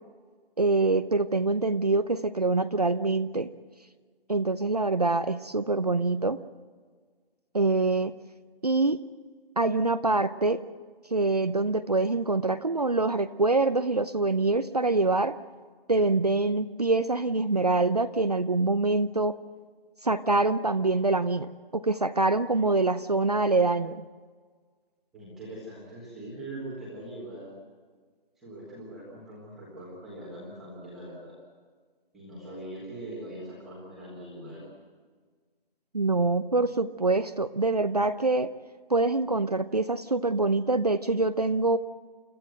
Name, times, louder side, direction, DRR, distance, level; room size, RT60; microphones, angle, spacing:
voice 1, 0.6-3.5 4.3-6.4 7.5-8.1 8.6-9.0 9.6-10.6 11.1-15.4 15.9-19.3 20.0-24.0 35.9-38.5 38.9-41.8, right 3 dB, 40° right, 11 dB, 0.7 m, -25 dB
voice 2, 25.1-27.6 28.4-31.4 32.1-34.6, right 1 dB, ahead, -8 dB, 1.4 m, -42 dB
30.0 x 14.5 x 7.8 m, 1.5 s
figure-of-eight pair, 180°, 29 cm